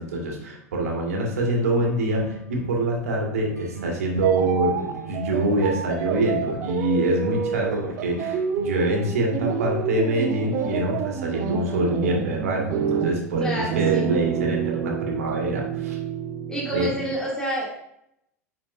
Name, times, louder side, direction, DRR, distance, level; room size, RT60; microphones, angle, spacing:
voice 1, 0.0-16.0 16.7-16.9, right 1 dB, 60° right, 0 dB, 1.8 m, -25 dB
sound 1, 1.2-11.0, right 3 dB, 85° right, 0.7 m, -41 dB
sound 2, 4.2-17.2, right 8 dB, 40° right, 0.6 m, -28 dB
voice 2, 13.4-14.1 16.5-17.7, right 1 dB, 5° left, -5 dB, 2.5 m, -28 dB
10.0 x 4.4 x 2.6 m, 0.77 s
figure-of-eight pair, 80°, 9 cm